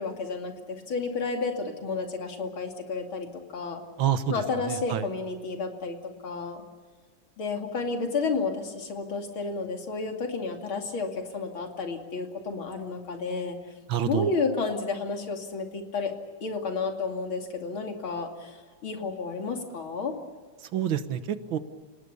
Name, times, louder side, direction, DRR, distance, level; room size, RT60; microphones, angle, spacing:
voice 1, 0.0-3.8 4.3-6.0 6.2-6.6 7.4-13.6 14.0-16.1 16.4-20.1, left 4 dB, 75° left, 3 dB, 3.4 m, -31 dB
voice 2, 4.0-4.4 4.7-5.1 13.9-14.3 20.7-21.6, right 9 dB, 75° right, 11 dB, 1.9 m, -27 dB
30.0 x 18.5 x 6.9 m, 1.4 s
omnidirectional pair, 2.3 m